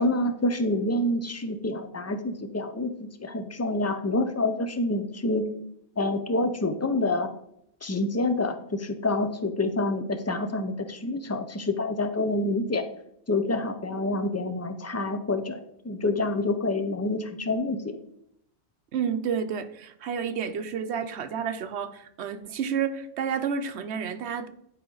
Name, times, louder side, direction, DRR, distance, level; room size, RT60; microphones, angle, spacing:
voice 1, 0.0-5.4 6.0-7.3 7.8-12.8 13.3-15.6 15.8-18.0, left 2 dB, 20° left, 10 dB, 0.5 m, -27 dB
voice 2, 18.9-24.5, right 7 dB, 85° right, 9 dB, 1.0 m, -30 dB
10.5 x 5.0 x 3.9 m, 0.73 s
omnidirectional pair, 1.1 m